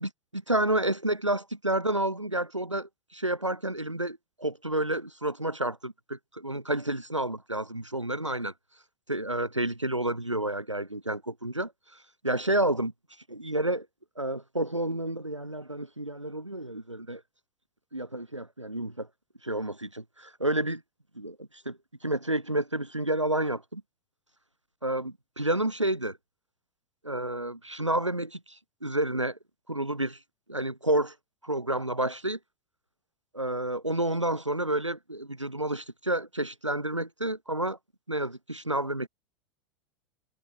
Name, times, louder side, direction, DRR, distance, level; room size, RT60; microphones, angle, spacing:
voice 1, 0.0-8.5 9.1-11.7 12.2-12.9 13.3-13.9 14.2-17.2 17.9-19.1 19.4-20.8 21.1-23.8 24.8-26.2 27.0-29.4 29.7-30.2 30.5-31.1 31.4-32.4 33.3-37.8 38.1-39.1, right 1 dB, 90° right, 1.5 m, -30 dB
figure-of-eight pair, 90°, 15 cm